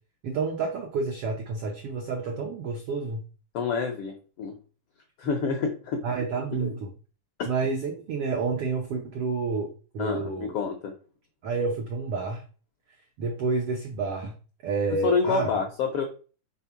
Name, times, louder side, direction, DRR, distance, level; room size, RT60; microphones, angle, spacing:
voice 1, 0.2-3.2 6.0-6.9 7.4-10.5 11.4-12.4 13.2-14.3 14.6-15.5, right 4 dB, 85° right, 3 dB, 1.2 m, -29 dB
voice 2, 3.5-4.6 5.2-6.0 6.6-6.8 10.0-10.9 15.0-16.0, left 5 dB, 80° left, 3 dB, 1.3 m, -28 dB
5.4 x 3.6 x 5.8 m, 0.36 s
omnidirectional pair, 3.8 m